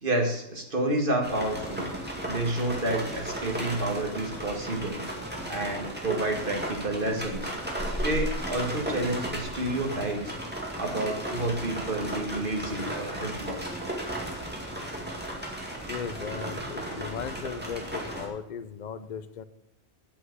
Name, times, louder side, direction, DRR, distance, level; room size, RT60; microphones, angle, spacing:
voice 1, 0.0-1.9 2.2-5.1 5.5-7.5 8.0-10.3 10.8-13.7, right 1 dB, 50° right, 2 dB, 2.1 m, -29 dB
sound 1, 1.2-18.3, right 1 dB, 10° right, 2.1 m, -35 dB
voice 2, 15.9-19.4, left 7 dB, 45° left, 11 dB, 0.8 m, -37 dB
8.6 x 7.6 x 8.1 m, 0.79 s
omnidirectional pair, 1.1 m